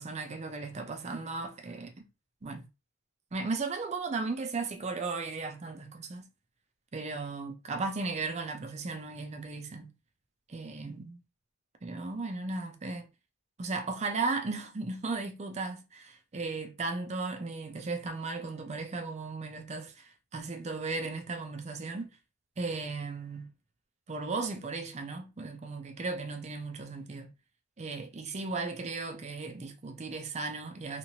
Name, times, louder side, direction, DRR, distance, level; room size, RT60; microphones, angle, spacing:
voice 1, 0.0-2.0 2.4-2.7 3.3-6.3 6.9-9.9 10.5-11.2 11.8-13.1 13.6-22.1 22.6-23.5 24.1-27.3 27.8-31.0, right 3 dB, 30° right, 0.5 m, -36 dB
2.9 x 2.4 x 2.7 m
head